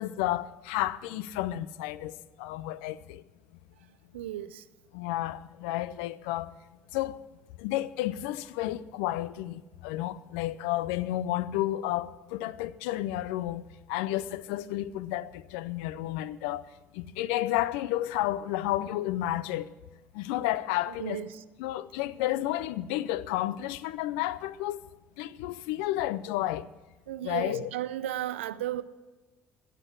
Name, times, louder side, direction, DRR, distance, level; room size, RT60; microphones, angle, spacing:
voice 1, 0.0-3.2 4.9-6.5 6.9-7.2 7.6-13.6 13.9-16.7 16.9-19.7 20.1-21.2 21.6-24.8 25.2-26.7 27.2-27.7, left 14 dB, 75° left, 0.5 m, -31 dB
voice 2, 4.1-4.6 21.0-21.3 27.1-28.8, right 13 dB, 85° right, 0.5 m, -34 dB
16.0 x 6.8 x 8.1 m
hypercardioid pair, 55°, 6 cm